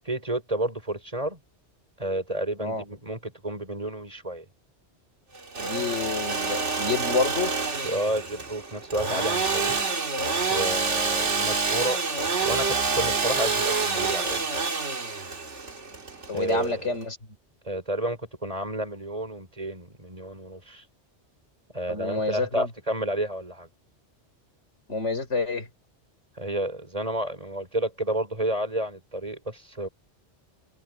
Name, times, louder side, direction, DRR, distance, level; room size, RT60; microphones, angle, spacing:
voice 1, 0.1-1.4 2.0-4.5 7.8-9.8 10.5-12.0 12.4-14.4 16.3-17.0 17.7-20.8 21.7-23.7 26.4-29.9, right 1 dB, 30° right, 5.5 m, -31 dB
Engine / Sawing, 5.4-17.0, right 4 dB, 90° right, 2.5 m, -27 dB
voice 2, 5.6-7.6 16.3-17.2 21.9-22.7 24.9-25.7, left 3 dB, 90° left, 4.6 m, -28 dB
omnidirectional pair, 1.2 m